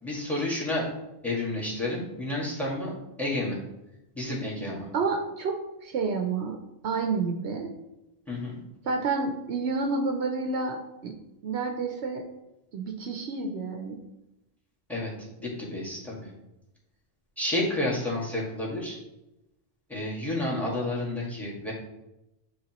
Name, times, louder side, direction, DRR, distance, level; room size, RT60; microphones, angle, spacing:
voice 1, 0.0-0.9 1.2-2.9 3.2-3.6 4.1-4.9 8.3-8.5 14.9-16.3 17.4-19.0 19.9-21.7, left 1 dB, ahead, -3 dB, 1.7 m, -30 dB
voice 2, 4.9-6.6 6.8-7.7 8.8-11.1 11.4-12.2 12.7-14.0, right 4 dB, 85° right, 3 dB, 1.0 m, -29 dB
9.6 x 3.5 x 3.0 m, 0.93 s
omnidirectional pair, 1.1 m